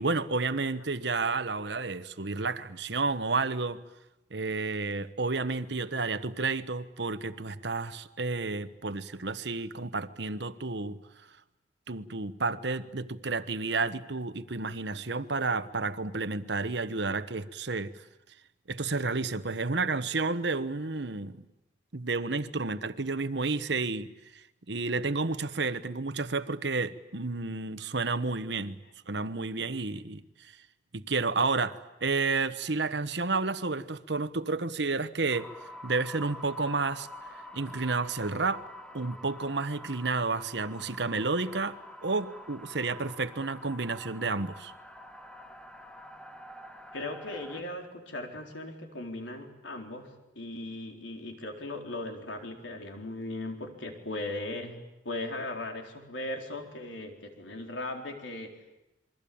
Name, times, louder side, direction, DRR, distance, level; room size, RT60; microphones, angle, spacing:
voice 1, 0.0-3.8 4.3-11.0 11.9-18.0 18.7-21.4 21.9-28.8 29.1-30.5 30.9-35.5 35.8-37.1 37.5-38.6 38.9-41.8 42.0-44.7, right 3 dB, 70° right, 13 dB, 1.2 m, -31 dB
sound 1, 35.3-47.6, left 1 dB, 5° left, 1.2 m, -47 dB
voice 2, 46.9-50.1 50.3-54.8 55.0-58.6, left 2 dB, 90° left, 3 dB, 4.2 m, -38 dB
28.0 x 23.0 x 8.7 m, 0.93 s
head